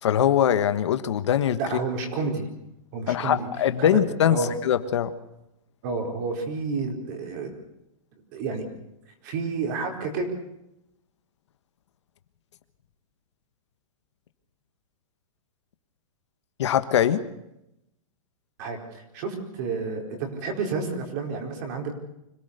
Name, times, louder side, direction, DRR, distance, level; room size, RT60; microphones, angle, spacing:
voice 1, 0.0-1.6 3.1-5.1 16.6-17.2, left 10 dB, 55° left, 10 dB, 1.4 m, -22 dB
voice 2, 1.6-2.5 2.9-3.5 3.8-3.9 4.3-4.5 5.8-7.5 8.3-8.6 9.2-10.3 18.6-21.9, right 4 dB, 35° right, 3 dB, 4.6 m, -30 dB
26.0 x 18.0 x 6.8 m, 0.85 s
hypercardioid pair, 170°, 17 cm